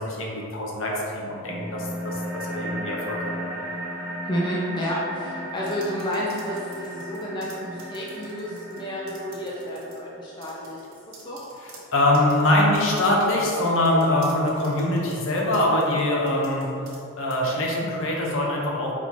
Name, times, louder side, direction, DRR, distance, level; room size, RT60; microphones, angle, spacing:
voice 1, 0.0-3.3 11.6-16.7 17.2-18.9, left 1 dB, 65° left, -2 dB, 0.8 m, -23 dB
sound 1, 1.4-10.4, right 1 dB, 10° right, 0.7 m, -35 dB
voice 2, 4.2-10.8 11.2-11.4, equal, 20° left, -5 dB, 0.4 m, -30 dB
sound 2, 5.6-8.8 9.1-10.0 10.4-17.0 17.3-17.5, right 3 dB, 80° right, 1.0 m, -49 dB
4.2 x 2.7 x 4.4 m, 2.7 s
head